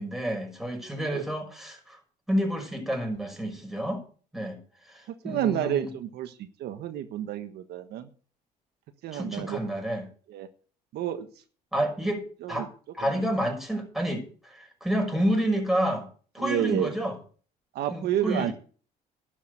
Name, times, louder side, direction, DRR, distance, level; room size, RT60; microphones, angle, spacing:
voice 1, 0.0-2.0 2.3-4.0 4.3-4.6 4.9-5.9 9.1-10.1 11.7-12.7 12.9-16.1 16.3-17.1 17.9-18.5, equal, ahead, 2 dB, 6.1 m, -29 dB
voice 2, 5.2-8.1 9.0-9.7 10.3-10.5 10.9-11.3 12.4-12.7 13.0-13.2 16.4-17.0 17.7-18.5, right 11 dB, 75° right, 8 dB, 1.4 m, -30 dB
12.0 x 8.2 x 8.1 m, 0.40 s
cardioid pair, 110°, 17 cm